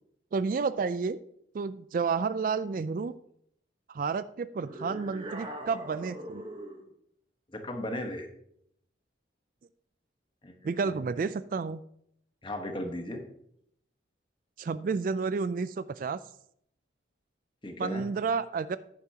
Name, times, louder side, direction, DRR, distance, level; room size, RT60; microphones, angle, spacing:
voice 1, 0.3-1.2 1.5-3.1 3.9-6.5 10.6-11.8 14.6-16.2 17.8-18.8, right 5 dB, 45° right, 15 dB, 0.3 m, -31 dB
sound 1, 4.6-6.9, right 1 dB, 30° right, 1.0 m, -41 dB
voice 2, 7.5-8.3 10.4-11.0 12.4-13.2 17.6-18.1, left 1 dB, 25° left, 5 dB, 1.1 m, -36 dB
10.5 x 9.6 x 2.8 m, 0.70 s
head